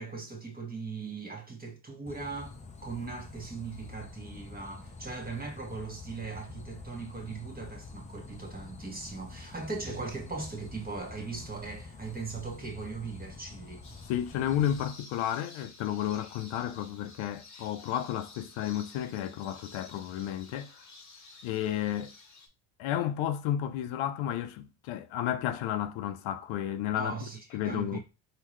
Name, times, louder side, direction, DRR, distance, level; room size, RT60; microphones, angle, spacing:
voice 1, 0.0-2.5 2.8-13.8 27.0-27.4 27.6-28.0, right 4 dB, 20° right, 1.2 m, -39 dB
sound 1, 2.1-14.9, left 3 dB, 15° left, 0.4 m, -47 dB
sound 2, 13.8-22.5, left 3 dB, 35° left, 1.1 m, -52 dB
voice 2, 14.1-20.8 21.4-22.1 22.8-27.1 27.5-28.0, left 11 dB, 75° left, 0.6 m, -32 dB
3.7 x 2.8 x 3.1 m
cardioid pair, 95°, 49 cm